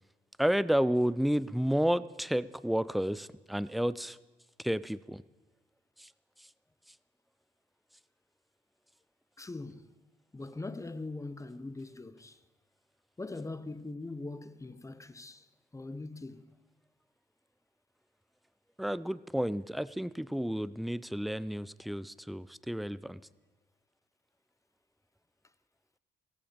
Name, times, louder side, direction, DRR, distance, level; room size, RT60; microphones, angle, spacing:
voice 1, 0.4-4.2 4.6-5.2 6.0-6.1 18.8-23.2, equal, ahead, 0.4 m, -31 dB
voice 2, 9.4-9.9 10.3-12.4 13.2-15.4 15.7-16.5, left 2 dB, 15° left, 0.8 m, -41 dB
16.5 x 14.5 x 5.2 m
cardioid pair, 90°, 20 cm